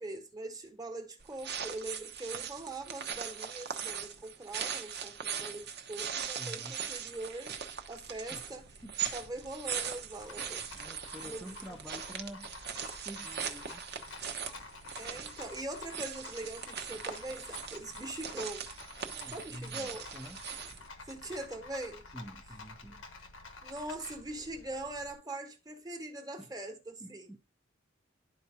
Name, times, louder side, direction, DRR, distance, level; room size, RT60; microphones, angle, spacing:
voice 1, 0.0-8.6 9.1-10.6 11.2-11.5 15.0-18.7 19.3-20.0 21.1-22.0 23.6-27.4, right 2 dB, 20° right, 1.3 m, -42 dB
sound 1, 1.2-20.9, right 8 dB, 60° right, 1.0 m, -40 dB
voice 2, 6.4-6.8 8.3-8.5 8.8-9.1 10.7-12.5 13.0-13.8 19.0-20.4 22.1-23.1 26.4-26.5 27.0-27.4, equal, ahead, 0.6 m, -47 dB
Rattle, 6.8-25.2, left 3 dB, 80° left, 1.3 m, -50 dB
12.0 x 4.6 x 2.6 m
head